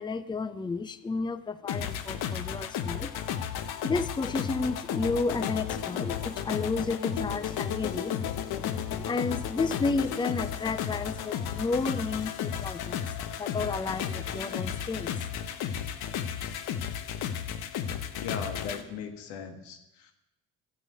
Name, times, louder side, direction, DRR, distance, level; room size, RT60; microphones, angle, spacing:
voice 1, 0.0-3.1 3.8-8.2 8.5-8.6 8.9-13.0 13.4-15.2, left 3 dB, 10° left, 14 dB, 0.6 m, -32 dB
sound 1, 1.7-18.8, left 8 dB, 65° left, 1.1 m, -33 dB
voice 2, 18.2-20.1, left 6 dB, 85° left, 7 dB, 1.7 m, -38 dB
11.5 x 7.7 x 8.3 m, 0.90 s
supercardioid pair, 80°, 39 cm